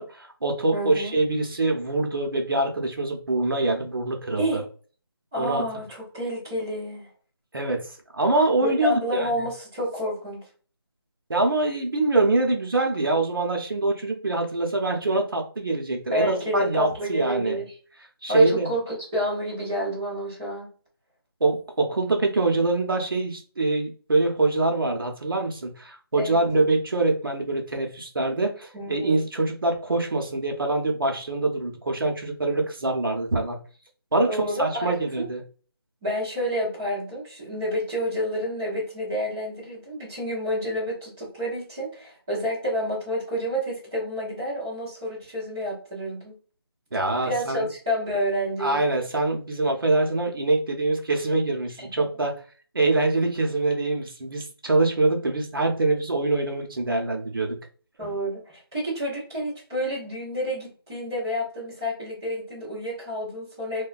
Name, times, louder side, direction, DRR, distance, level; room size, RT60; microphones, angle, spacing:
voice 1, 0.0-4.6 5.4-5.6 7.5-9.5 11.3-17.6 18.2-18.7 21.4-33.6 34.1-34.3 34.6-35.4 46.9-47.7 48.6-52.3 52.7-57.6, right 2 dB, 60° right, 3 dB, 0.7 m, -24 dB
voice 2, 0.7-1.2 4.4-4.6 5.3-7.1 8.6-10.4 16.1-17.7 18.3-20.7 26.1-26.4 28.7-29.2 34.3-35.3 36.0-46.3 47.2-48.8 51.8-52.1 58.0-63.8, equal, 5° right, -11 dB, 0.5 m, -29 dB
2.7 x 2.2 x 2.4 m, 0.39 s
figure-of-eight pair, 170°, 13 cm